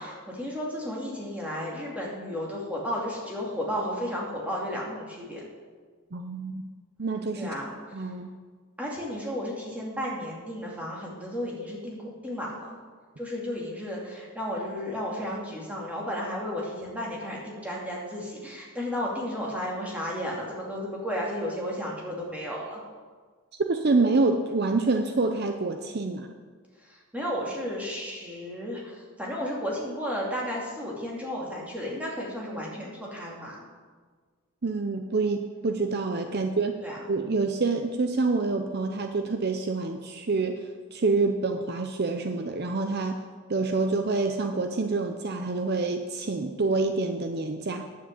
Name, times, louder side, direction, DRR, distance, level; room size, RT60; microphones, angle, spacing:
voice 1, 0.0-5.5 7.4-8.0 8.8-12.8 13.2-22.8 26.9-33.6 36.3-36.5 36.8-37.0, equal, 5° right, -3 dB, 2.4 m, -33 dB
voice 2, 6.1-6.7 7.0-7.5 7.9-8.3 23.6-26.3 34.6-36.8 37.1-40.6 40.9-43.2 43.5-47.8, right 3 dB, 50° right, 6 dB, 0.6 m, -27 dB
9.6 x 7.5 x 8.2 m, 1.5 s
head